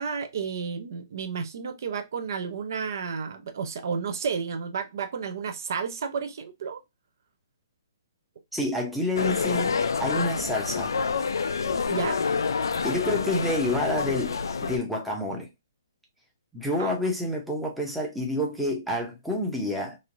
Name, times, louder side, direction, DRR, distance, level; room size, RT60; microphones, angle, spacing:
voice 1, 0.0-6.8 11.9-12.2 16.8-16.9, right 6 dB, 55° right, 0.4 m, -32 dB
voice 2, 8.5-10.9 12.8-15.5 16.5-20.0, left 1 dB, ahead, 0.6 m, -28 dB
sound 1, 9.2-14.8, left 5 dB, 90° left, 0.4 m, -28 dB
3.0 x 2.5 x 2.5 m
hypercardioid pair, 165°, 2 cm